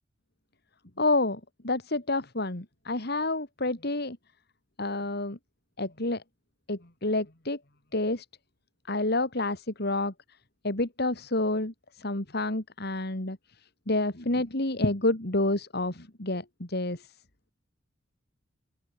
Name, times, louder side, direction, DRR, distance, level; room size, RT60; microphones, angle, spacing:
voice 1, 1.0-4.2 4.8-5.4 5.8-6.2 6.7-7.6 7.9-8.2 8.9-10.1 10.6-11.7 12.0-13.4 13.9-17.1, left 2 dB, 55° left, 3.1 m, -29 dB
open air
head